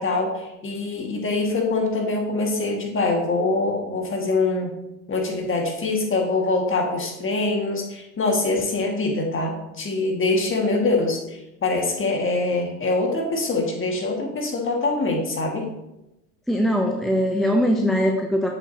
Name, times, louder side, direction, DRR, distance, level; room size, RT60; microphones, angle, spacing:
voice 1, 0.0-4.7 5.1-15.7, left 3 dB, 25° left, 2 dB, 1.7 m, -24 dB
voice 2, 16.5-18.5, equal, ahead, 2 dB, 0.3 m, -21 dB
7.5 x 6.9 x 2.7 m, 0.92 s
hypercardioid pair, 95°, 47 cm